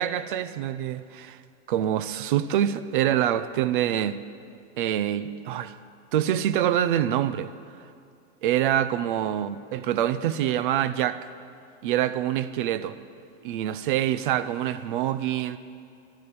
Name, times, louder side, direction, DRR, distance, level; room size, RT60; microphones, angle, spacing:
voice 1, 0.0-1.4 1.7-4.2 4.8-5.7 6.1-7.5 8.4-11.3 11.8-13.0 13.4-15.6, right 11 dB, 40° right, 0.5 m, -25 dB
13.0 x 11.5 x 8.4 m
supercardioid pair, 170°, 39 cm